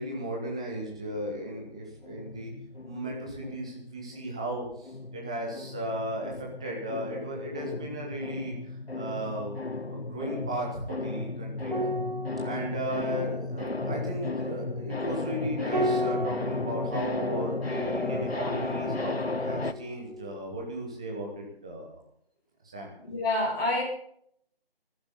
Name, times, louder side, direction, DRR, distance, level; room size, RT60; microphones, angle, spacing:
voice 1, 0.0-2.5 2.8-9.6 9.9-11.7 12.4-22.0 22.7-22.9, right 1 dB, 5° right, -1 dB, 1.0 m, -36 dB
sound 1, 2.0-4.6 4.8-19.7, left 3 dB, 85° left, 1.4 m, -34 dB
sound 2, 11.6-20.4 20.7-20.9, equal, 45° right, 1.3 m, -36 dB
voice 2, 23.0-23.8, left 2 dB, 20° left, -6 dB, 7.9 m, -27 dB
20.0 x 14.0 x 4.1 m, 0.67 s
figure-of-eight pair, 160°, 30 cm